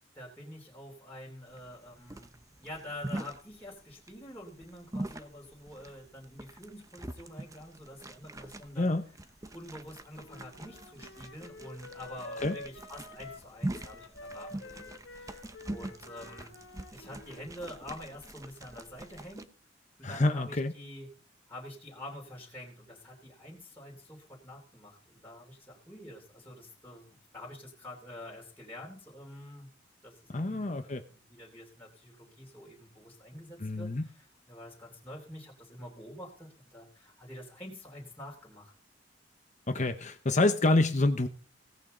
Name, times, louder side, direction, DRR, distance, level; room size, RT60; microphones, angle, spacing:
voice 1, 0.1-2.3 2.6-8.9 9.5-16.6 16.9-19.5 20.0-21.1 21.5-29.7 30.0-38.7, left 1 dB, 10° left, -4 dB, 3.1 m, -47 dB
sound 1, 1.5-19.4, right 1 dB, 15° right, 0.8 m, -43 dB
Wind instrument woodwind instrument, 10.1-17.4, left 2 dB, 80° left, 1.2 m, -48 dB
voice 2, 20.0-20.7 30.3-31.0 33.6-34.0 39.7-41.3, left 2 dB, 40° left, 8 dB, 0.9 m, -27 dB
17.0 x 9.1 x 3.9 m, 0.41 s
head